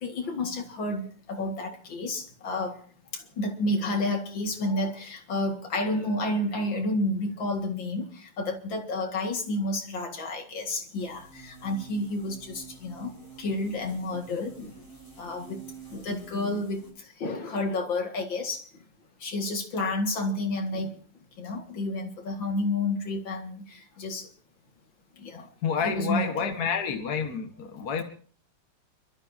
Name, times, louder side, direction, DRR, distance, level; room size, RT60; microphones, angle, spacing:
voice 1, 0.0-2.8 3.1-13.1 13.4-14.7 15.2-15.6 15.9-16.8 17.2-18.6 19.2-21.0 21.4-24.3 25.2-25.5 25.8-26.5, left 2 dB, 65° left, 2.7 m, -30 dB
sound 1, 11.0-16.9, right 5 dB, 25° left, 5.4 m, -49 dB
voice 2, 25.6-28.0, left 6 dB, 50° left, 1.8 m, -29 dB
30.0 x 12.5 x 2.7 m
omnidirectional pair, 2.2 m